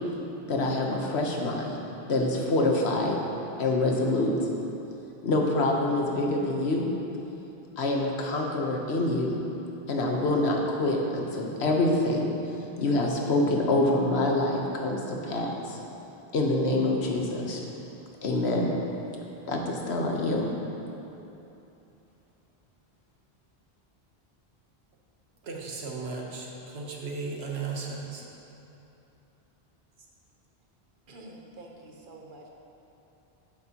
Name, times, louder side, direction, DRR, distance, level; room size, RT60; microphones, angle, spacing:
voice 1, 0.5-1.8 2.1-3.2 3.6-4.3 5.2-6.8 7.8-9.4 9.9-12.3 12.8-15.8 16.3-17.6 18.2-18.7 19.5-20.4, left 2 dB, 90° left, 1.3 m, -26 dB
voice 2, 25.4-28.3, right 4 dB, 85° right, 1.3 m, -35 dB
voice 3, 31.1-32.5, right 2 dB, 55° right, 1.1 m, -47 dB
11.5 x 7.9 x 2.9 m
omnidirectional pair, 1.0 m